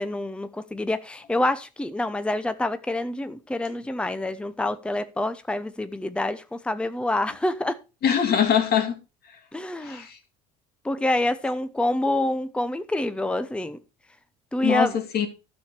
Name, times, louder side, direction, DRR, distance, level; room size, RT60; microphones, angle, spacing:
voice 1, 0.0-7.8 9.5-10.1 10.8-13.8 14.5-14.9, left 1 dB, 5° left, 0.8 m, -27 dB
voice 2, 8.0-9.0 9.8-10.2 14.6-15.3, left 8 dB, 50° left, 2.4 m, -22 dB
12.5 x 6.7 x 4.3 m
hypercardioid pair, 70°, 20 cm